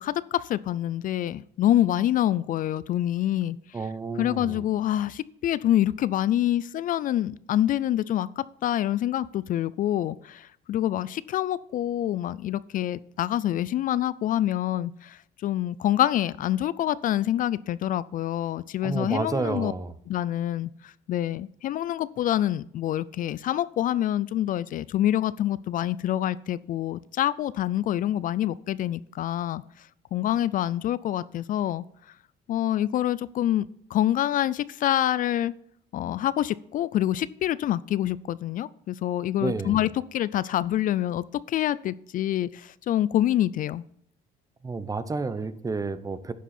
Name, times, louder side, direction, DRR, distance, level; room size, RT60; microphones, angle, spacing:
voice 1, 0.0-3.6 4.2-19.7 20.1-31.8 32.5-35.5 35.9-43.8, left 12 dB, 55° left, 0.4 m, -26 dB
voice 2, 3.7-4.6 18.8-19.9 39.4-39.8 44.6-46.3, right 3 dB, 20° right, 0.7 m, -30 dB
11.0 x 7.4 x 4.3 m
cardioid pair, 110°, 17 cm